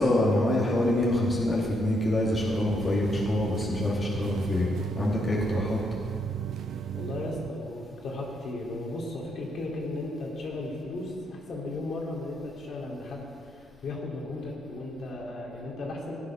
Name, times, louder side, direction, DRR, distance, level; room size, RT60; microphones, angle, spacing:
voice 1, 0.0-4.7 5.0-5.8, left 1 dB, 30° left, -4 dB, 2.3 m, -25 dB
sound 1, 2.3-7.5, right 9 dB, 70° right, 0.4 m, -35 dB
voice 2, 6.9-16.2, left 2 dB, 60° left, -2 dB, 3.1 m, -35 dB
14.5 x 9.6 x 6.2 m, 2.4 s
cardioid pair, 90°, 0 cm